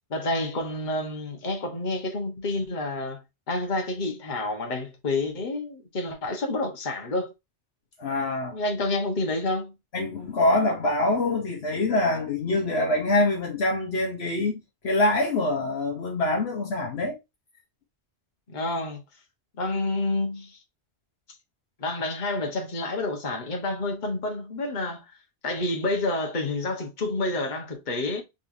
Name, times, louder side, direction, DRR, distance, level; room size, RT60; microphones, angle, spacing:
voice 1, 0.1-7.3 8.5-9.7 18.5-19.0 19.6-20.6 21.8-25.0 25.4-28.2, left 2 dB, 45° left, 1.2 m, -29 dB
voice 2, 8.0-8.6 9.9-17.2, left 2 dB, 65° left, 1.2 m, -25 dB
4.0 x 3.3 x 2.6 m
omnidirectional pair, 1.2 m